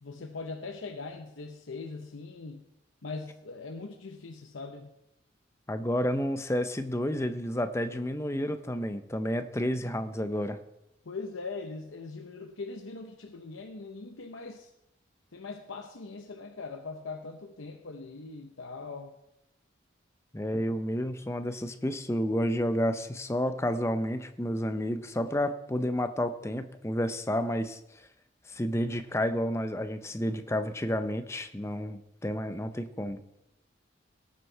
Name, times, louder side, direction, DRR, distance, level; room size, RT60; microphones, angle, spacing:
voice 1, 0.0-2.6 3.0-4.9 11.0-14.7 15.3-19.1, left 3 dB, 85° left, 5 dB, 0.8 m, -41 dB
voice 2, 5.7-10.6 20.3-27.8 28.5-33.2, equal, 15° left, 9 dB, 0.5 m, -30 dB
17.5 x 6.4 x 4.5 m, 0.87 s
head